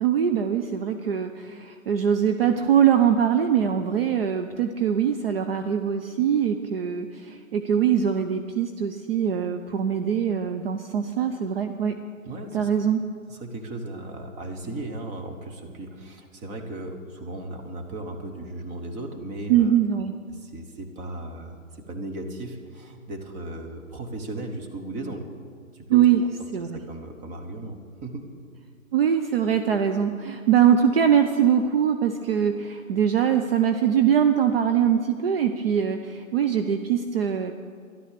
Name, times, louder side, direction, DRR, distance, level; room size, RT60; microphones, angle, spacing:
voice 1, 0.0-12.0 12.5-13.0 19.5-20.1 25.9-26.2 26.5-26.8 28.9-37.5, right 8 dB, 45° right, 7 dB, 0.7 m, -22 dB
voice 2, 12.2-12.7 13.3-19.8 20.3-25.3 25.7-26.3 26.6-28.3, right 1 dB, 15° right, 3 dB, 1.2 m, -36 dB
13.0 x 11.5 x 6.7 m, 2.2 s
hypercardioid pair, 140°, 42 cm